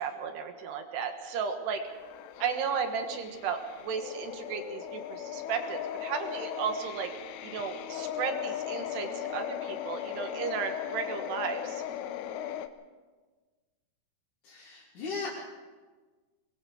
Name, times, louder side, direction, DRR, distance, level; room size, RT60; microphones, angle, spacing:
voice 1, 0.0-1.8 2.4-7.1 7.4-11.8, right 6 dB, 65° right, 6 dB, 3.2 m, -34 dB
sound 1, 1.8-12.7, left 10 dB, 85° left, 3.3 m, -38 dB
voice 2, 14.4-15.3, left 4 dB, 45° left, -7 dB, 4.0 m, -37 dB
24.0 x 21.0 x 5.1 m, 1.3 s
omnidirectional pair, 5.6 m